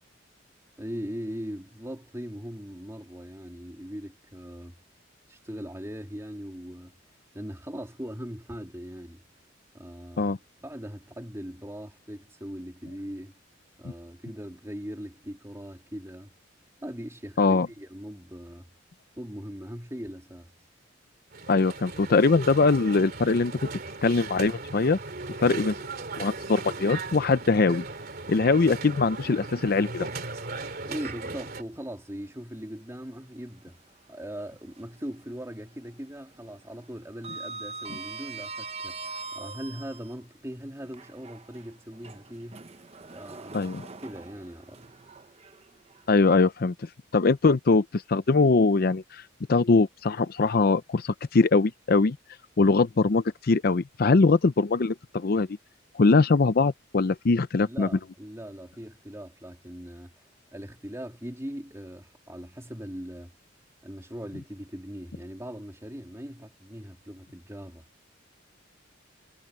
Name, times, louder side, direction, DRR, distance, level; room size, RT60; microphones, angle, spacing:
voice 1, 0.8-4.7 5.3-7.0 7.3-9.2 9.7-10.4 10.6-13.3 13.8-16.3 16.8-18.7 19.2-20.5 30.8-33.8 34.1-42.7 43.1-43.6 44.0-44.9 57.6-60.1 60.5-63.3 63.8-67.8, equal, 15° right, 3.1 m, -40 dB
sound 1, 21.3-31.6, right 3 dB, 50° right, 2.8 m, -37 dB
voice 2, 21.5-23.5 24.0-25.0 25.4-25.8 26.2-27.8 28.3-30.1 43.5-43.9 46.1-49.2 49.5-52.2 52.6-55.5 55.9-57.9, left 3 dB, 50° left, 0.5 m, -22 dB
Sliding door, 31.0-31.9 32.3-32.4 34.1-35.1 35.4-35.8 36.0-40.1 40.8-46.0, right 3 dB, 30° right, 0.8 m, -42 dB
head